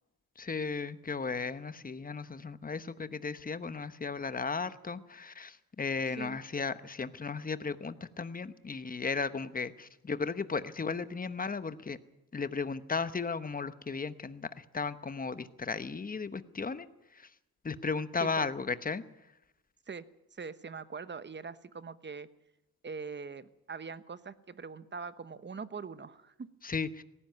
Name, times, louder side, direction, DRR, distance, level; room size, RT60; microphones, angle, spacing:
voice 1, 0.4-12.0 12.3-16.9 17.1-17.3 17.6-19.0 26.6-27.0, left 4 dB, 25° left, 13 dB, 1.0 m, -35 dB
voice 2, 6.1-6.4 18.2-18.5 19.9-20.0 20.3-22.3 22.8-26.5, right 5 dB, 30° right, 14 dB, 1.0 m, -42 dB
18.0 x 15.5 x 9.2 m, 0.92 s
cardioid pair, 105°, 37 cm